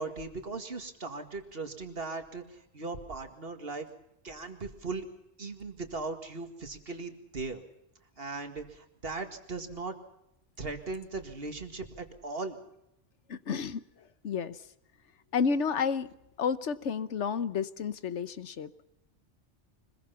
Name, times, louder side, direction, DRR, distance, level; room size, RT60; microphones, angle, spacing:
voice 1, 0.0-3.9 4.2-5.1 5.4-7.6 8.2-10.0 10.6-12.6, right 3 dB, 55° right, 6 dB, 2.3 m, -38 dB
voice 2, 13.3-13.8 14.2-14.6 15.3-18.7, left 6 dB, 75° left, 14 dB, 1.3 m, -31 dB
25.0 x 21.0 x 5.7 m, 0.82 s
omnidirectional pair, 1.2 m